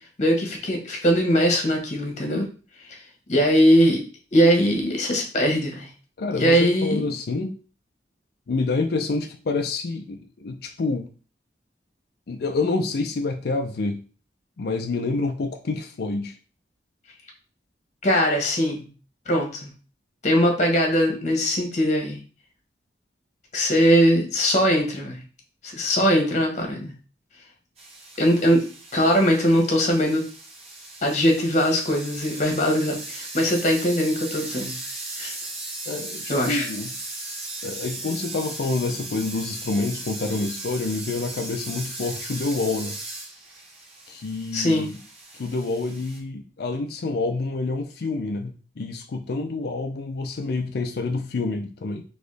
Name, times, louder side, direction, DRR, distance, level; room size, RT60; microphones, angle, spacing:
voice 1, 0.2-2.5 2.9-3.0 3.3-4.0 4.3-5.9 6.3-7.1 18.0-18.8 19.3-19.7 20.2-22.2 23.5-25.2 25.6-26.9 28.2-28.6 28.9-30.2 31.0-34.7 35.2-35.3 36.3-36.7 44.5-44.9, equal, 45° left, 1 dB, 1.3 m, -21 dB
voice 2, 6.2-7.6 8.5-11.1 12.3-14.0 14.6-16.3 35.9-36.9 37.6-43.0 44.1-45.0 45.4-52.0, left 3 dB, 60° left, 5 dB, 0.5 m, -27 dB
sound 1, 27.8-46.2, right 2 dB, 35° right, 1.3 m, -37 dB
4.1 x 3.1 x 3.2 m, 0.36 s
head